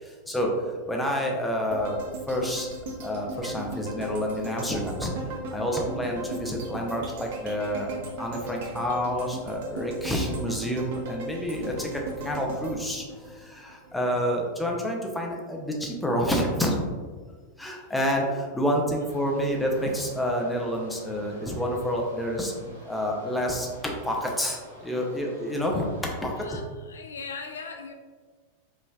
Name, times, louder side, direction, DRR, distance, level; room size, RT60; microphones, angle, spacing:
voice 1, 0.0-2.0 2.3-2.7 3.0-5.1 5.5-7.9 8.2-16.8 17.6-25.9 26.2-26.3, equal, 5° left, 0 dB, 0.7 m, -28 dB
sound 1, 1.7-13.9 14.3-14.4, right 1 dB, 55° right, 0.7 m, -37 dB
sound 2, 19.1-26.4, equal, 90° left, 1.0 m, -49 dB
voice 2, 26.4-27.9, left 4 dB, 65° left, 4 dB, 0.4 m, -40 dB
5.0 x 3.2 x 2.4 m, 1.5 s
figure-of-eight pair, 90°, 0 cm